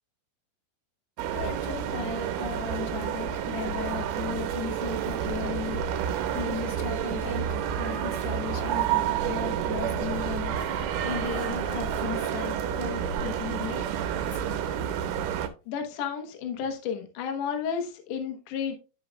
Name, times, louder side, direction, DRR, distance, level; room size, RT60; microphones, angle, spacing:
sound 1, 1.2-15.5, right 9 dB, 80° right, 2.6 m, -29 dB
voice 1, 1.3-7.5 7.8-13.9, left 7 dB, 85° left, 3.2 m, -36 dB
voice 2, 15.7-18.7, left 7 dB, 65° left, 2.3 m, -32 dB
13.0 x 4.9 x 2.3 m
omnidirectional pair, 4.8 m